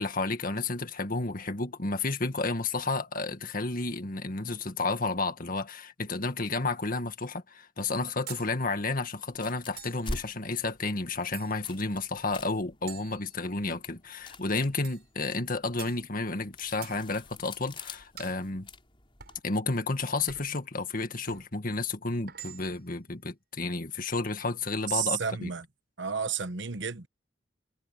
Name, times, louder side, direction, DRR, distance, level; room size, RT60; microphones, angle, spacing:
voice 1, 0.0-18.7 19.4-25.5, left 3 dB, 50° left, 1.9 m, -31 dB
sound 1, 8.3-8.5 9.8-10.1 11.3-11.8 12.9-13.8 14.8-15.1 15.8-16.0 16.8-17.0 18.2-18.4 19.2-19.4 20.3-20.6 21.3-21.5 22.3-22.9, right 10 dB, 60° right, 7.3 m, -46 dB
sound 2, 9.3-19.4, left 2 dB, 30° left, 4.5 m, -46 dB
voice 2, 24.9-25.7 26.0-27.1, right 7 dB, 75° right, 1.2 m, -31 dB
head